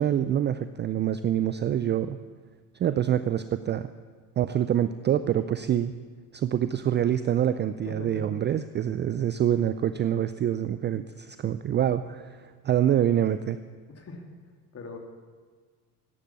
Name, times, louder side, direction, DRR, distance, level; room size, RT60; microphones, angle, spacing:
voice 1, 0.0-2.2 2.8-3.9 4.4-5.9 6.3-13.6, right 10 dB, 25° right, 12 dB, 0.4 m, -26 dB
voice 2, 7.8-8.3 13.9-14.3 14.7-15.0, left 3 dB, 30° left, 3 dB, 2.8 m, -41 dB
15.0 x 10.0 x 8.3 m, 1.5 s
hypercardioid pair, 80°, 48 cm